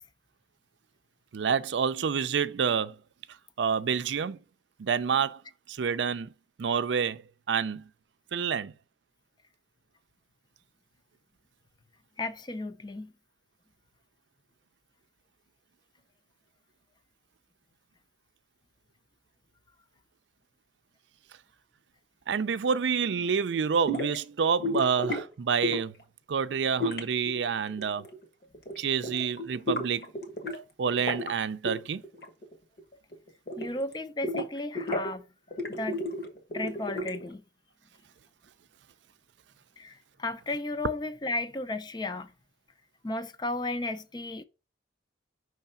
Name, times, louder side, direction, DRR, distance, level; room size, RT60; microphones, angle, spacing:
voice 1, 1.3-3.0 3.6-4.4 4.8-5.4 5.7-6.3 6.6-7.2 7.5-7.9 8.3-8.7 22.3-25.9 26.3-28.0 28.8-30.1 30.8-32.0, right 6 dB, 90° right, 0.4 m, -28 dB
voice 2, 12.2-13.1 33.6-35.2 35.7-36.0 36.5-37.4 39.8-42.3 43.0-44.4, left 2 dB, 25° left, 0.4 m, -34 dB
sound 1, 23.9-24.2 24.6-25.2 25.6-26.0 26.8-28.2 28.5-28.8 29.0-30.6 30.9-31.3 31.6-31.8 32.0-32.5 32.8-33.9 34.2-35.1 35.5-37.3, left 1 dB, 60° left, 1.3 m, -32 dB
5.7 x 3.2 x 5.4 m
head